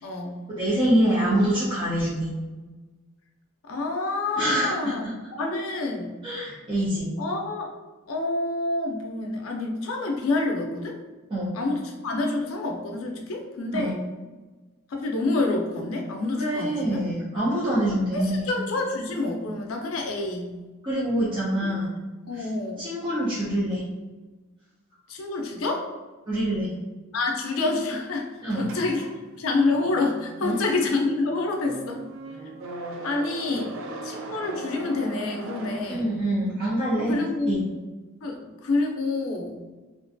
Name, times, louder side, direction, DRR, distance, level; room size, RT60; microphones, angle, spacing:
voice 1, 0.0-0.4 3.6-5.0 5.3-6.1 7.2-7.7 8.1-11.0 11.5-14.0 14.9-17.0 18.1-20.5 22.3-22.8 25.1-25.9 27.1-28.3 28.6-29.0 29.4-32.0 33.0-33.7 34.0-36.1 37.0-37.7 38.2-39.5, left 2 dB, 75° left, 2 dB, 0.5 m, -27 dB
voice 2, 0.6-2.3 4.4-5.1 6.2-7.1 11.3-11.6 13.7-14.0 16.3-18.5 20.8-21.9 22.3-22.5 22.8-23.8 26.3-26.7 28.4-28.7 30.4-30.6 33.5-33.6 35.9-37.2 37.5-37.6, right 1 dB, 25° right, -10 dB, 0.6 m, -25 dB
sound 1, 28.5-36.5, right 2 dB, 70° right, 0.4 m, -39 dB
2.5 x 2.2 x 2.5 m, 1.2 s
head